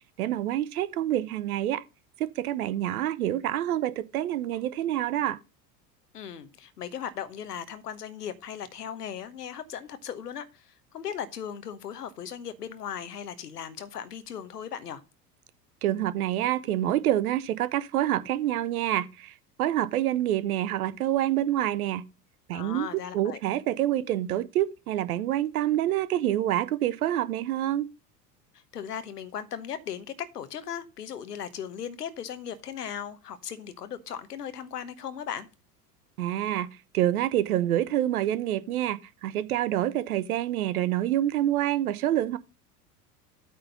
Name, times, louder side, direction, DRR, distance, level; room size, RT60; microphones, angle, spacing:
voice 1, 0.2-1.8 2.2-5.4 15.8-22.0 22.5-22.9 23.1-27.9 36.2-42.4, right 13 dB, 60° right, 0.7 m, -27 dB
voice 2, 6.1-15.0 22.5-23.4 28.5-35.5, left 8 dB, 75° left, 1.0 m, -37 dB
8.7 x 3.8 x 6.9 m
figure-of-eight pair, 80°, 48 cm